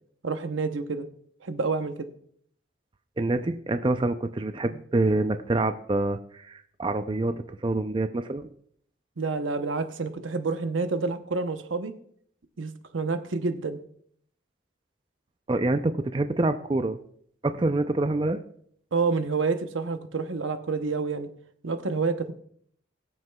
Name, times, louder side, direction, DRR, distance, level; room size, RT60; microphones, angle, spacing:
voice 1, 0.2-1.1 1.4-2.1 9.2-11.9 12.6-13.8 18.9-21.3 21.6-22.3, right 4 dB, 85° right, 9 dB, 0.8 m, -28 dB
voice 2, 3.2-8.5 15.5-17.0 17.4-18.4, right 2 dB, 25° right, 9 dB, 0.4 m, -26 dB
23.0 x 7.8 x 2.3 m, 0.63 s
head